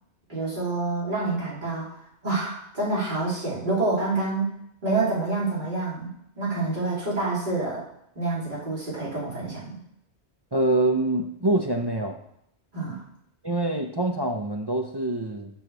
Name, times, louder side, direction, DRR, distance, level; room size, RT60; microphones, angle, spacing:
voice 1, 0.3-1.8 2.2-4.5 4.8-6.1 6.4-7.8 8.1-9.8 12.7-13.0, right 3 dB, 45° right, -8 dB, 3.2 m, -27 dB
voice 2, 10.5-12.2 13.4-15.5, right 2 dB, 30° right, 2 dB, 0.5 m, -25 dB
7.0 x 4.5 x 6.8 m, 0.75 s
omnidirectional pair, 1.1 m